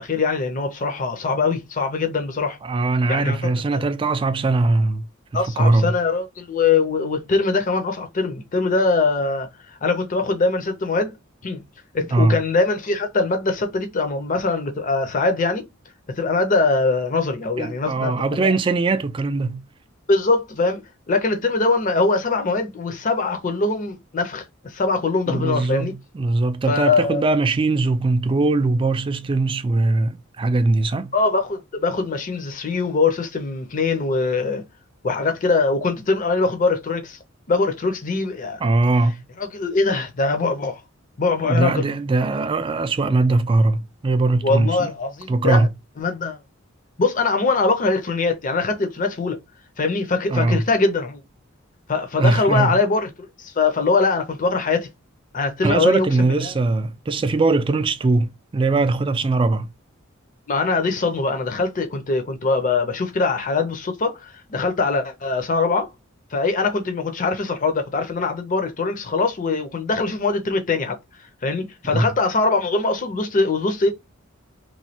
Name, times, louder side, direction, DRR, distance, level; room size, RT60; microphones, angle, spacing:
voice 1, 0.0-2.6 3.1-3.4 3.7-3.8 5.3-9.5 9.8-11.1 11.4-11.6 11.9-15.6 16.1-18.5 20.1-25.9 26.7-27.2 31.1-34.6 35.0-37.2 37.5-38.6 39.4-40.8 41.2-41.9 44.4-45.7 46.0-46.4 47.0-49.4 49.8-51.2 51.9-53.1 53.4-54.9 55.3-56.5 60.5-65.9 66.3-71.0 71.4-73.9, left 3 dB, 40° left, 0.6 m, -22 dB
voice 2, 2.6-5.0 5.3-5.9 12.1-12.4 17.6-19.6 25.3-31.1 38.6-39.2 41.4-44.9 45.3-45.7 50.3-50.6 52.2-52.8 55.6-59.7 71.9-72.1, right 3 dB, 25° right, 0.3 m, -20 dB
3.1 x 2.2 x 2.8 m
head